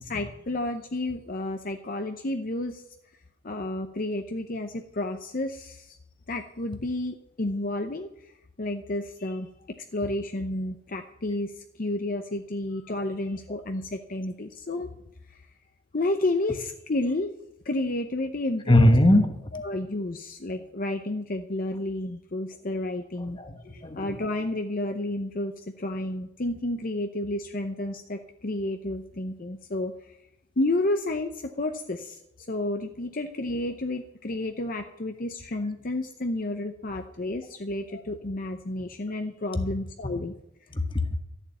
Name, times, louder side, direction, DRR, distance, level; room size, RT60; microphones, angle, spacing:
voice 1, 0.0-2.8 3.4-6.0 6.3-9.5 9.9-14.9 15.3-15.4 15.9-17.3 17.6-19.0 19.5-23.4 23.7-30.2 30.6-40.3, left 2 dB, 45° left, 5 dB, 0.8 m, -31 dB
voice 2, 18.7-19.5 23.3-24.2 40.7-41.2, left 1 dB, 25° left, 6 dB, 1.3 m, -21 dB
13.5 x 7.2 x 9.3 m, 0.82 s
head